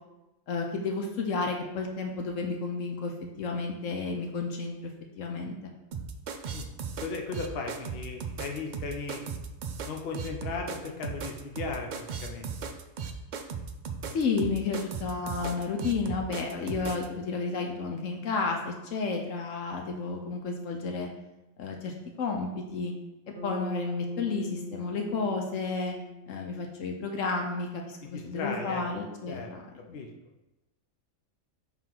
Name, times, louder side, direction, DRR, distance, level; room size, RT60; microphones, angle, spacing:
voice 1, 0.5-4.9 5.2-5.6 14.1-21.1 21.6-22.9 23.4-25.9 26.3-29.6 29.9-30.0, left 4 dB, 70° left, 2 dB, 1.1 m, -32 dB
sound 1, 5.9-17.1, right 6 dB, 80° right, 0.4 m, -37 dB
voice 2, 7.0-9.2 9.8-12.7 28.0-28.8 29.3-29.5 29.9-30.1, left 4 dB, 50° left, 2 dB, 0.9 m, -36 dB
Bass guitar, 23.4-27.7, left 1 dB, 60° right, 1.1 m, -42 dB
5.6 x 3.8 x 4.6 m, 0.98 s
omnidirectional pair, 1.4 m